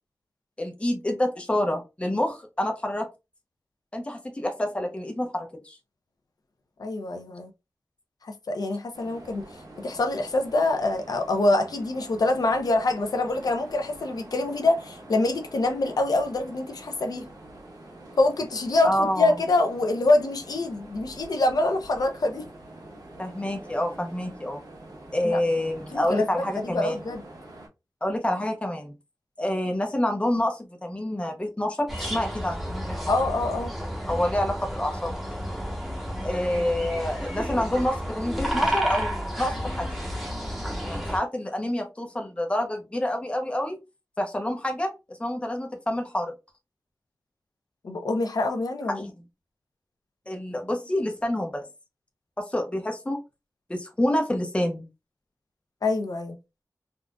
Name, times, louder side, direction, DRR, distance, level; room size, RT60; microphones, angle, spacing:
voice 1, 0.6-3.1 3.9-5.8 18.8-19.3 23.2-24.6 25.1-27.0 28.0-28.9 29.4-33.1 34.1-35.1 36.2-40.0 40.9-43.8 44.2-44.9 45.2-46.3 48.9-49.1 50.3-51.7 52.5-53.2 53.7-54.9, left 1 dB, 15° left, 0.7 m, -27 dB
voice 2, 6.8-7.5 8.2-9.4 9.8-17.3 18.2-22.5 25.2-25.4 25.9-27.2 33.1-33.7 47.8-49.1 55.8-56.4, left 2 dB, 70° left, 0.6 m, -25 dB
sound 1, 8.9-27.7, right 1 dB, 75° right, 1.4 m, -46 dB
sound 2, 31.9-41.2, equal, 5° right, 1.0 m, -31 dB
3.8 x 2.4 x 2.2 m
wide cardioid pair, 95°, 7 cm